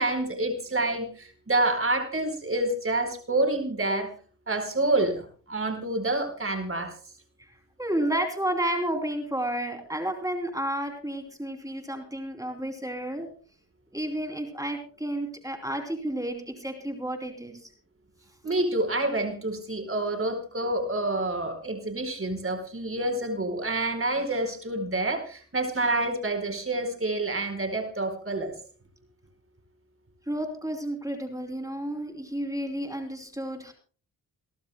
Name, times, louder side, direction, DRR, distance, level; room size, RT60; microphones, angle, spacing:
voice 1, 0.0-4.1 4.5-6.9 18.4-28.5, right 2 dB, 30° right, 6 dB, 4.6 m, -28 dB
voice 2, 7.8-13.3 13.9-17.7 30.3-33.7, right 1 dB, 10° right, 4 dB, 3.1 m, -31 dB
29.5 x 12.0 x 2.2 m, 0.41 s
supercardioid pair, 50°, 42 cm